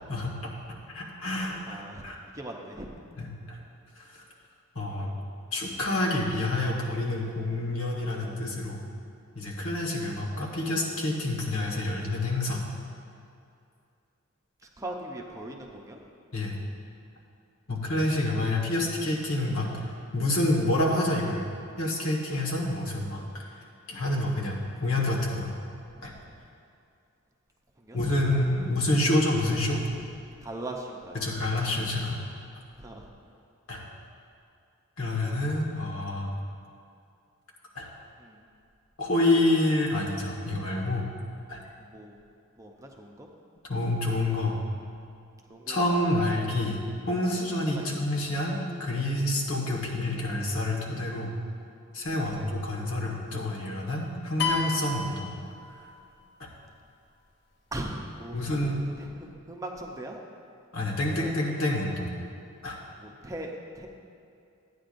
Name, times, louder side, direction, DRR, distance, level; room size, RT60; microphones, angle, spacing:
voice 1, 0.1-0.5 0.9-2.2 3.2-3.6 4.8-5.2 5.5-8.8 9.4-12.6 16.3-16.6 17.7-19.8 20.1-21.5 21.8-23.2 23.9-25.5 26.0-26.1 27.9-29.9 31.1-32.2 33.7-33.8 35.0-36.3 37.8-37.9 39.0-41.1 41.5-41.6 43.7-44.6 45.7-46.8 47.1-51.3 51.9-55.3 56.4-56.5 58.3-58.8 60.7-62.1 62.6-62.8, left 1 dB, 85° left, -2 dB, 1.6 m, -28 dB
voice 2, 1.7-2.0 2.4-2.9 14.8-16.0 27.9-28.0 30.4-31.2 32.8-33.1 38.2-38.4 41.9-42.2 42.6-43.3 45.5-45.8 47.7-48.0 52.3-52.4 57.7-58.7 59.0-60.2 63.0-63.9, right 1 dB, 15° right, 0 dB, 0.6 m, -39 dB
sound 1, 54.4-56.1, left 4 dB, 55° left, 0.9 m, -31 dB
13.0 x 9.0 x 2.6 m, 2.5 s
head